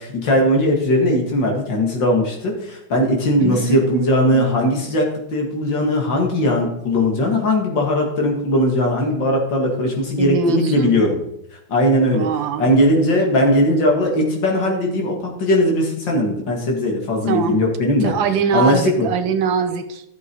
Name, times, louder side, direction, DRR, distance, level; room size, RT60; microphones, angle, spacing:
voice 1, 0.0-11.2 11.7-12.3 12.6-18.1 18.5-19.1, left 1 dB, 65° left, 0 dB, 2.9 m, -19 dB
voice 2, 3.4-4.9 10.2-11.0 12.1-12.7 17.3-17.6 18.0-20.0, right 6 dB, 75° right, 8 dB, 1.6 m, -23 dB
12.5 x 7.3 x 4.6 m, 0.79 s
omnidirectional pair, 2.1 m